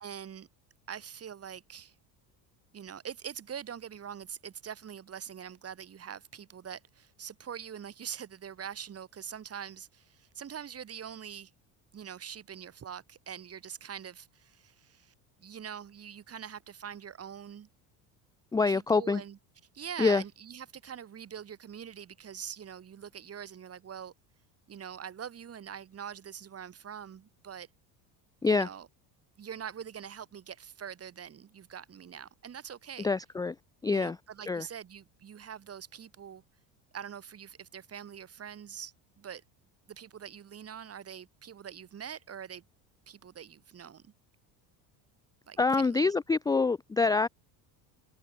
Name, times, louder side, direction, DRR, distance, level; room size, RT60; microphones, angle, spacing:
voice 1, 0.0-0.5 0.9-1.9 2.7-11.5 11.9-17.7 18.7-19.4 19.7-24.1 24.7-27.7 28.5-28.9 29.4-33.1 33.9-36.4 36.9-39.4 39.9-42.6 43.1-44.1 45.5-46.1, right 8 dB, 30° right, 1.3 m, -44 dB
voice 2, 18.5-19.2 20.0-20.2 28.4-28.7 33.0-33.6 33.8-34.2 34.4-34.7 45.6-47.3, left 4 dB, 10° left, 0.4 m, -26 dB
supercardioid pair, 85°, 48 cm